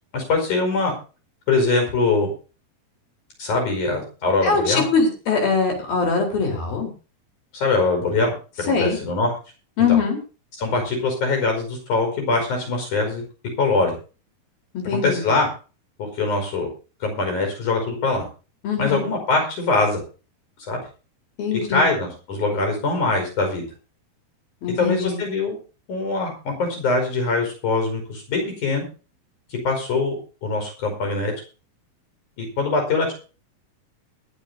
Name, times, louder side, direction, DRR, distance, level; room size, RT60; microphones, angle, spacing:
voice 1, 0.1-0.9 1.5-2.3 3.4-4.9 7.5-9.3 9.9-10.0 10.6-13.2 13.6-13.9 15.0-15.5 16.0-16.7 17.0-18.2 18.8-20.0 20.7-20.8 21.5-23.6 24.8-25.6 25.9-28.8 29.6-30.2 30.4-31.3 32.4-33.2, left 3 dB, 50° left, 3 dB, 6.4 m, -22 dB
voice 2, 4.4-6.9 8.7-9.0 9.8-10.2 14.9-15.2 18.6-19.0 21.4-21.9 24.6-25.2, left 5 dB, 70° left, 2 dB, 5.9 m, -22 dB
21.5 x 11.5 x 2.8 m, 0.35 s
omnidirectional pair, 4.4 m